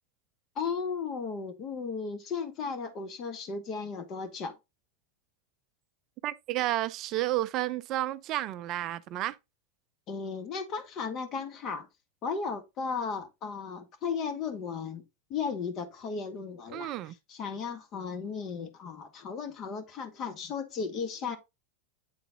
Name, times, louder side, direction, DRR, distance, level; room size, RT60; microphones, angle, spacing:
voice 1, 0.5-4.6 10.1-11.9 12.2-15.0 15.3-16.9 17.3-21.4, left 5 dB, 40° left, 1.6 m, -35 dB
voice 2, 6.2-9.4 16.7-17.1, right 15 dB, 45° right, 0.4 m, -31 dB
8.5 x 3.9 x 3.7 m
hypercardioid pair, 95°, 0 cm